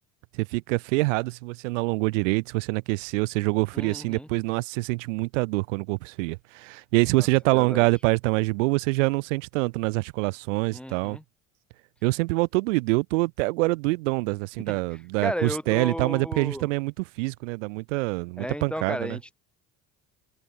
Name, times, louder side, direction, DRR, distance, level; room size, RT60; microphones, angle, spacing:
voice 1, 0.3-11.2 12.0-19.2, right 25 dB, 85° right, 3.9 m, -25 dB
voice 2, 3.7-4.3 7.2-7.3 7.5-7.8 10.7-11.2 14.7-14.8 15.2-16.7 18.4-19.3, equal, 5° left, 3.2 m, -34 dB
open air
supercardioid pair, 85°, 36 cm